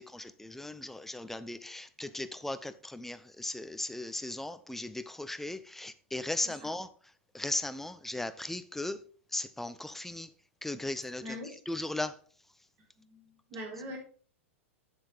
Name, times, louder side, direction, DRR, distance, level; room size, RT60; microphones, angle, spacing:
voice 1, 0.0-6.9 7.3-9.0 9.3-10.3 10.6-11.2 11.7-12.1, left 2 dB, 5° left, 0.6 m, -37 dB
voice 2, 6.4-6.7 11.2-11.6 13.0-14.0, equal, 35° right, 3.4 m, -43 dB
8.6 x 7.4 x 3.4 m
figure-of-eight pair, 95°, 7 cm